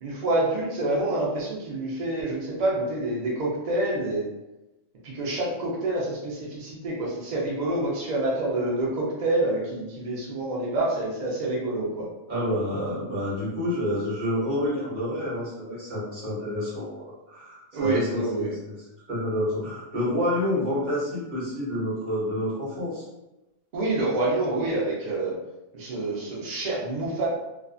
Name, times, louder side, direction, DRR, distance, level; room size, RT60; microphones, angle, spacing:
voice 1, 0.0-4.3 5.0-12.1 17.7-18.6 23.7-25.4 25.7-27.3, right 2 dB, 75° right, -4 dB, 0.4 m, -27 dB
voice 2, 12.3-17.0 17.3-18.8 19.1-23.0, left 1 dB, 35° right, -9 dB, 1.3 m, -28 dB
2.4 x 2.3 x 2.4 m, 0.98 s
omnidirectional pair, 1.4 m